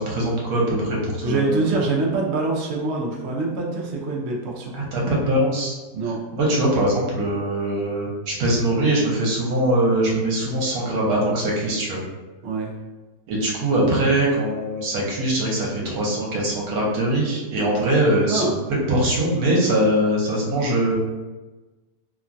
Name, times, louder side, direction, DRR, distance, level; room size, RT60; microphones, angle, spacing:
voice 1, 0.0-1.7 4.7-5.8 6.3-12.0 13.3-20.9, right 1 dB, 65° right, -4 dB, 1.2 m, -22 dB
voice 2, 1.2-4.7 5.9-6.2 12.4-12.7 18.3-18.5, right 3 dB, 90° right, -2 dB, 0.5 m, -24 dB
3.1 x 2.2 x 2.5 m, 1.2 s
omnidirectional pair, 1.8 m